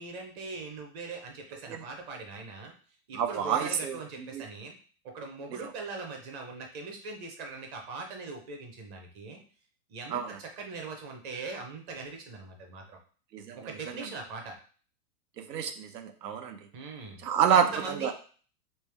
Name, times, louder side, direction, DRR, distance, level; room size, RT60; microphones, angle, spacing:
voice 1, 0.0-2.7 3.1-4.7 5.0-9.4 9.9-13.0 13.5-14.6 16.7-17.2 17.5-18.1, right 3 dB, 20° right, 2 dB, 0.5 m, -41 dB
voice 2, 3.1-4.0 4.3-4.4 10.1-10.3 13.3-13.6 15.4-16.6 17.2-18.1, right 8 dB, 90° right, 6 dB, 0.9 m, -28 dB
3.3 x 3.1 x 3.3 m, 0.41 s
hypercardioid pair, 150°, 47 cm